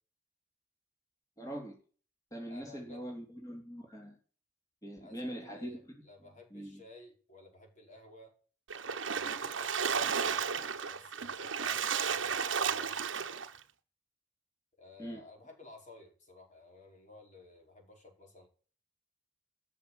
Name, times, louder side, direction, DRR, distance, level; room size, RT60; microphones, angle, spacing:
voice 1, 1.4-1.8 2.3-4.2 4.8-6.0 6.5-6.8 15.0-15.2, equal, 20° left, -1 dB, 3.5 m, -42 dB
voice 2, 2.5-3.0 5.0-8.3 9.1-13.1 14.8-18.5, left 2 dB, 40° left, 2 dB, 4.8 m, -55 dB
Splash splatter, 8.7-13.6, right 6 dB, 75° right, 1.2 m, -33 dB
14.0 x 6.9 x 6.4 m, 0.40 s
head